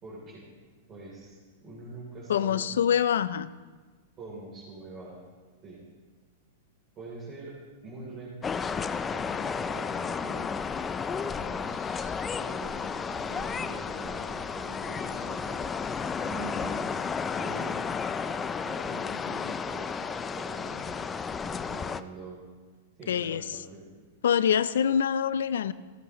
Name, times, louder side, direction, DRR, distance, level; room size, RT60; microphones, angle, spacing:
voice 1, 0.0-0.5 0.9-2.6 4.2-5.1 5.6-5.8 7.0-10.7 11.2-16.8 17.3-17.9 18.1-21.0 21.4-22.4 23.0-23.8, right 2 dB, 30° right, -6 dB, 3.5 m, -44 dB
voice 2, 2.3-3.5 23.1-23.4 24.2-25.7, left 8 dB, 85° left, 16 dB, 0.5 m, -25 dB
sound 1, 8.4-22.0, left 6 dB, 15° left, 0.4 m, -33 dB
15.5 x 14.0 x 3.1 m, 1.4 s
hypercardioid pair, 135°, 0 cm